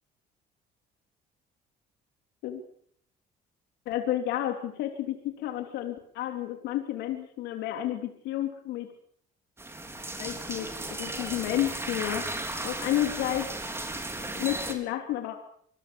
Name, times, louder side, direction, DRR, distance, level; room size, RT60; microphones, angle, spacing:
voice 1, 3.8-8.9 10.2-12.4 12.6-13.5 14.4-15.4, left 12 dB, 85° left, 5 dB, 3.3 m, -31 dB
sound 1, 9.6-14.7, right 2 dB, 15° right, 4.6 m, -35 dB
26.0 x 21.5 x 7.1 m, 0.64 s
cardioid pair, 110°, 17 cm